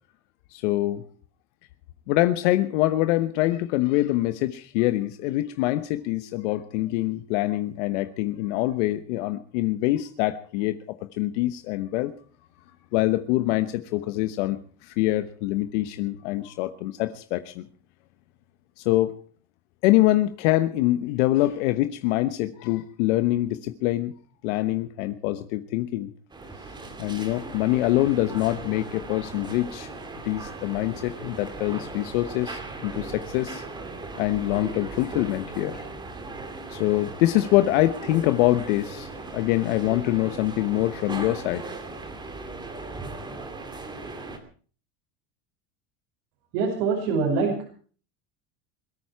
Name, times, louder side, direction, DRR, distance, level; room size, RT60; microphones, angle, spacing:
voice 1, 0.5-1.0 2.1-10.8 11.1-12.1 12.9-17.7 18.8-19.1 19.8-24.1 24.4-26.1 27.0-29.9 30.2-33.6 34.2-35.8 36.7-41.7, left 16 dB, 85° left, 10 dB, 1.2 m, -24 dB
sound 1, 26.3-44.4, right 3 dB, 10° right, 2.6 m, -38 dB
voice 2, 46.5-47.7, right 4 dB, 75° right, -2 dB, 5.7 m, -24 dB
22.0 x 13.5 x 4.7 m, 0.42 s
cardioid pair, 165°, 35 cm